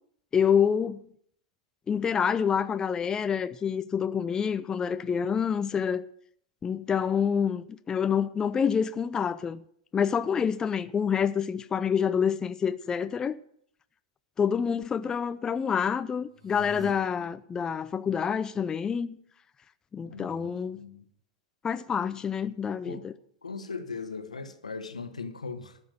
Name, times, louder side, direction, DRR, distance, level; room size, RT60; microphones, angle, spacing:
voice 1, 0.3-1.0 1.9-6.0 6.6-9.6 9.9-13.4 14.4-19.1 19.9-20.8 21.6-23.1, left 7 dB, 20° left, 0.4 m, -27 dB
sound 1, 16.3-16.9, left 1 dB, 85° right, 3.2 m, -44 dB
voice 2, 20.0-21.1 22.9-23.1 23.4-25.8, left 4 dB, 85° left, 1.3 m, -39 dB
13.0 x 6.1 x 8.9 m
figure-of-eight pair, 95°, 4 cm